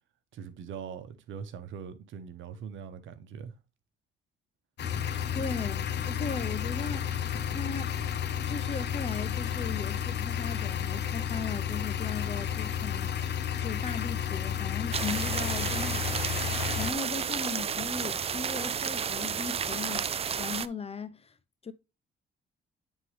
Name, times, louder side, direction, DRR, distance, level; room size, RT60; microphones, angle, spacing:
voice 1, 0.3-3.5, right 7 dB, 75° right, 1.0 m, -42 dB
sound 1, 4.8-16.9, left 9 dB, 60° left, 0.8 m, -32 dB
voice 2, 5.1-7.2 7.5-8.0 8.5-13.1 13.6-16.1 16.8-20.1 20.4-21.3 21.6-21.7, left 5 dB, 30° left, 0.7 m, -37 dB
sound 2, 14.9-20.7, right 7 dB, 30° right, 0.4 m, -32 dB
9.1 x 3.7 x 3.3 m
cardioid pair, 90°, 20 cm